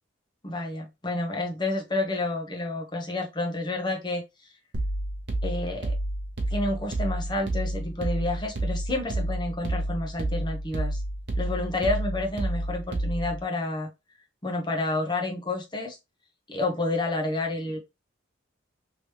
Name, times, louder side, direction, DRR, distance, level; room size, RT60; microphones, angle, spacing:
voice 1, 0.4-4.2 5.4-5.9 6.5-11.0 11.4-13.9 14.4-16.0 16.5-17.9, left 2 dB, 20° left, 2 dB, 0.8 m, -29 dB
sound 1, 4.7-13.4, right 1 dB, 60° right, 0.8 m, -30 dB
3.3 x 3.0 x 3.0 m, 0.24 s
head